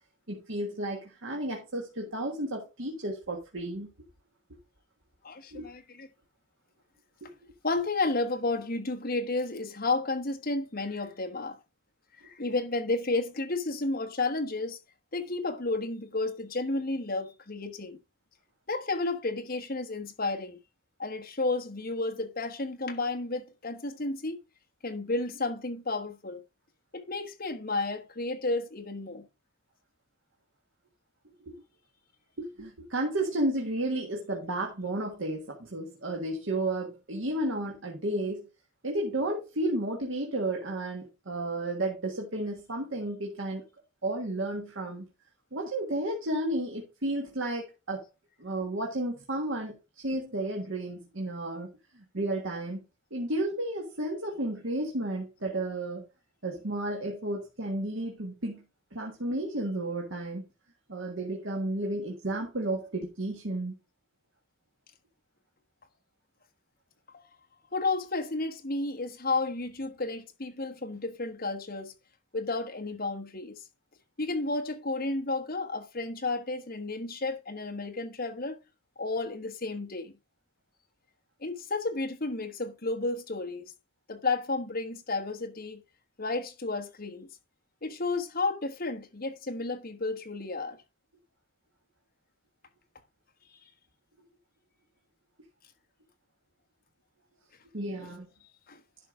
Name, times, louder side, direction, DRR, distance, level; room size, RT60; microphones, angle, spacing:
voice 1, 0.3-3.9 5.5-5.6 7.2-7.3 31.4-31.6 32.4-38.5 38.8-43.6 44.0-45.0 45.5-48.1 48.4-52.8 53.1-56.1 56.4-58.6 58.9-60.4 60.9-63.7 97.7-98.3, right 1 dB, 70° right, 1.6 m, -32 dB
voice 2, 5.2-6.1 7.6-11.6 12.2-14.8 15.1-18.0 18.7-20.6 21.0-24.4 24.8-26.4 26.9-29.3 67.1-67.2 67.7-71.9 72.3-73.6 74.2-78.6 79.0-80.1 81.4-83.7 84.1-85.8 86.2-87.3 87.8-90.8 93.5-93.6 98.0-98.1 98.7-98.8, left 3 dB, 45° left, 1.3 m, -32 dB
11.0 x 5.9 x 3.7 m
head